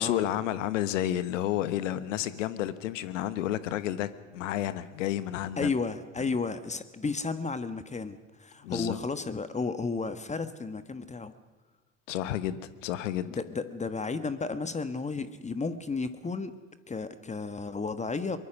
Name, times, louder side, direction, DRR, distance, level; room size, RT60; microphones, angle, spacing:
voice 1, 0.0-5.7 8.6-9.0 12.1-13.3, left 12 dB, 75° left, 14 dB, 1.2 m, -31 dB
voice 2, 5.6-11.3 13.3-16.5 16.9-18.4, left 4 dB, 20° left, 11 dB, 1.3 m, -33 dB
23.0 x 22.0 x 6.2 m, 1.3 s
hypercardioid pair, 70°, 38 cm